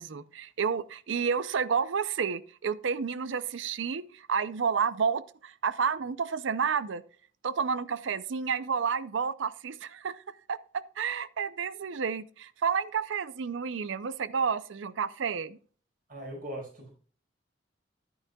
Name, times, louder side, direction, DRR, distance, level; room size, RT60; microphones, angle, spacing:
voice 1, 0.0-7.0 7.4-10.2 10.5-15.6, right 6 dB, 75° right, 0.5 m, -30 dB
voice 2, 16.1-16.9, right 1 dB, 45° right, 5.1 m, -40 dB
11.0 x 9.4 x 2.3 m
head